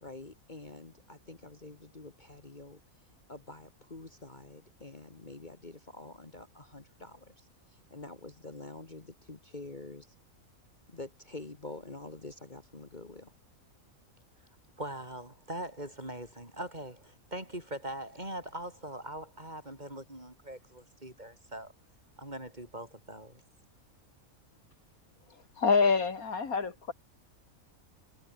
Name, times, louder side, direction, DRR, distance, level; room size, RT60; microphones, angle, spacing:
voice 1, 0.0-2.8 3.3-10.1 10.9-13.3, left 2 dB, 35° left, 2.2 m, -47 dB
voice 2, 14.8-21.7 22.2-23.4, right 1 dB, 30° right, 6.3 m, -41 dB
voice 3, 25.6-26.9, left 5 dB, 85° left, 2.8 m, -26 dB
omnidirectional pair, 1.5 m